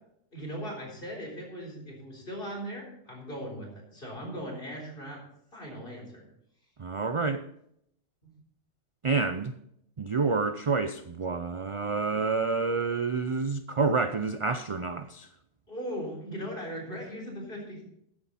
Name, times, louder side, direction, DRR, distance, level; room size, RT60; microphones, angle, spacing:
voice 1, 0.3-5.2 5.5-6.2 8.2-8.3 15.7-17.8, equal, 45° left, 4.0 m, -39 dB
voice 2, 6.8-7.4 9.0-9.5 10.0-15.3, right 4 dB, 55° right, 0.3 m, -28 dB
14.0 x 9.7 x 4.2 m
omnidirectional pair, 1.3 m